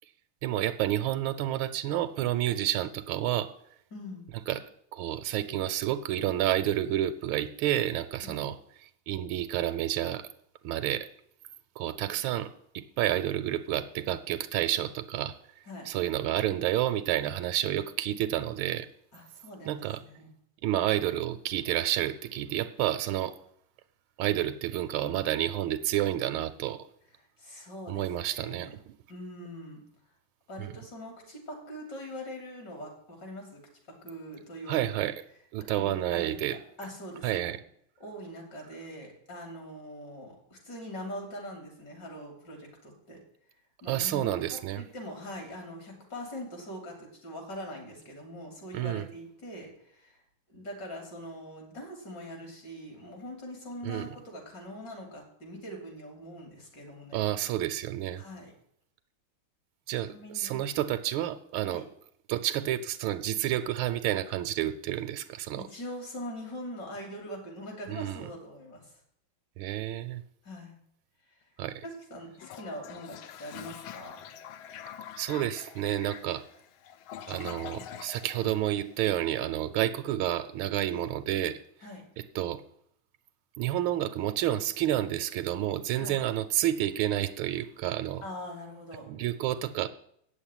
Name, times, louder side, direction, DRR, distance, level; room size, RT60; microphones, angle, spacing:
voice 1, 0.4-3.5 4.5-4.6 4.9-8.6 9.1-10.3 10.6-11.1 11.8-15.3 15.9-18.9 19.7-20.0 20.6-23.3 24.2-26.8 27.9-28.7 30.6-30.7 34.7-35.1 35.5-36.6 37.2-37.6 43.9-44.8 48.7-49.0 53.8-54.1 57.1-58.2 59.9-61.8 62.3-65.6 67.9-68.3 69.6-70.2 71.6-71.8 75.2-76.4 77.3-81.6 82.3-82.6 83.6-88.2 89.1-89.9, right 13 dB, 80° right, 9 dB, 1.4 m, -30 dB
voice 2, 3.9-4.3 8.2-8.4 15.7-15.9 19.1-20.3 27.2-28.7 29.1-29.8 30.5-33.6 33.9-35.1 35.8-37.6 38.0-43.2 43.8-50.2 50.5-57.2 58.1-58.5 60.0-60.6 61.6-61.8 65.6-68.9 70.4-70.8 71.8-74.2 80.9-81.1 81.8-82.0 85.9-86.2 88.2-89.1, equal, 50° left, 1 dB, 3.7 m, -43 dB
Toilet flush, 72.3-79.3, left 9 dB, 75° left, 1.5 m, -45 dB
8.9 x 7.3 x 8.9 m, 0.71 s
omnidirectional pair, 2.3 m